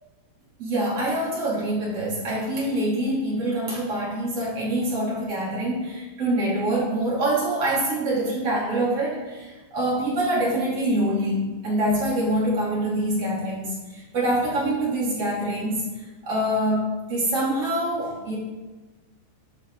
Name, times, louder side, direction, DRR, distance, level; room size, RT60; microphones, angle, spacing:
voice 1, 0.6-15.8 16.2-18.4, right 1 dB, 35° right, -6 dB, 3.7 m, -25 dB
11.5 x 11.0 x 3.9 m, 1.2 s
omnidirectional pair, 5.7 m